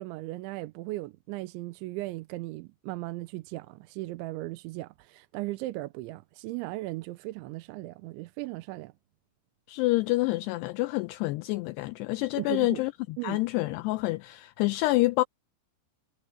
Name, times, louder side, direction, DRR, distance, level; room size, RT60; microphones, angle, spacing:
voice 1, 0.0-8.9 12.4-12.8 13.2-13.4, right 19 dB, 90° right, 3.1 m, -37 dB
voice 2, 9.7-15.2, left 20 dB, 85° left, 2.4 m, -27 dB
omnidirectional pair, 5.4 m